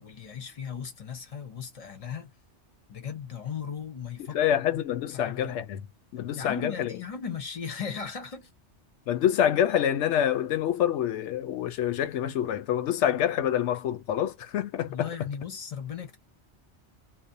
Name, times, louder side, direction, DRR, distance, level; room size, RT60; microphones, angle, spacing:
voice 1, 0.0-2.3 2.9-4.8 5.1-5.6 6.4-8.5 14.9-16.2, left 6 dB, 40° left, 0.6 m, -37 dB
voice 2, 4.2-5.8 6.1-6.9 9.1-15.1, left 10 dB, 75° left, 0.9 m, -26 dB
2.6 x 2.0 x 2.6 m
omnidirectional pair, 1.2 m